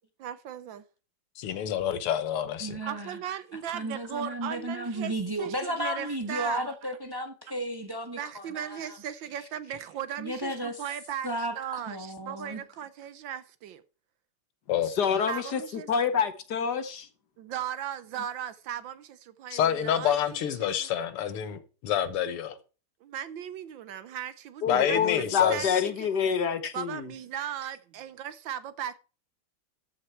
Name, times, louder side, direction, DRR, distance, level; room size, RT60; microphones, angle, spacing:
voice 1, 0.2-0.8 2.8-5.1 5.4-6.9 8.2-13.8 15.3-15.9 17.4-20.9 23.0-26.1 26.7-29.0, right 9 dB, 70° right, 1.4 m, -37 dB
voice 2, 1.4-2.8 14.7-14.9 19.5-22.5 24.7-25.8, left 9 dB, 90° left, 2.0 m, -27 dB
voice 3, 2.6-3.2 3.7-8.9 10.2-10.8 11.2-12.6, right 1 dB, 15° right, 1.0 m, -34 dB
voice 4, 14.9-15.6 15.9-17.1 24.6-27.1, left 7 dB, 55° left, 1.4 m, -27 dB
13.5 x 6.4 x 4.4 m
omnidirectional pair, 2.4 m